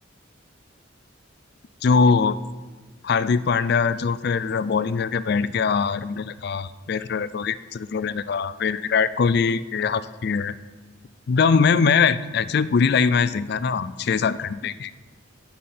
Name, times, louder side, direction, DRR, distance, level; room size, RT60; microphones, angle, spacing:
voice 1, 1.8-2.4 3.0-10.5 11.3-14.9, left 5 dB, 50° left, 15 dB, 0.4 m, -22 dB
14.5 x 5.7 x 4.3 m, 1.4 s
head